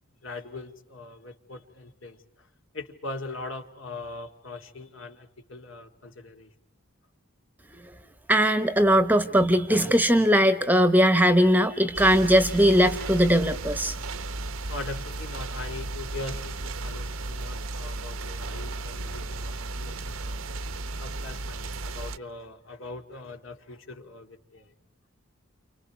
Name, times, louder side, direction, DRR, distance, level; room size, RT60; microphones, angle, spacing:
voice 1, 0.2-2.2 2.7-6.5 14.7-20.4 21.0-24.7, left 2 dB, 65° left, 5 dB, 2.4 m, -41 dB
voice 2, 8.3-13.9, equal, 10° right, 10 dB, 1.1 m, -20 dB
sound 1, 11.9-22.2, right 2 dB, 75° right, 1.0 m, -34 dB
30.0 x 28.5 x 4.6 m, 0.81 s
head